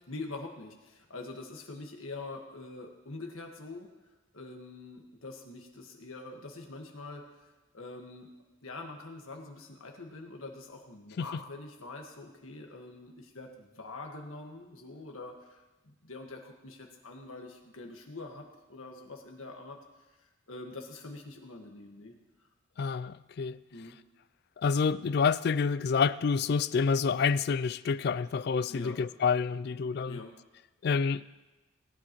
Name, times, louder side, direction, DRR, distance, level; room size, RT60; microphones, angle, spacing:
voice 1, 0.1-3.9 4.3-7.2 7.7-8.3 8.6-19.8 20.5-22.1 23.7-24.0 28.7-29.0 30.1-30.3, left 2 dB, 90° left, 1.6 m, -44 dB
voice 2, 22.8-23.6 24.6-30.2 30.8-31.2, left 5 dB, 50° left, 0.3 m, -28 dB
18.5 x 10.0 x 3.1 m
head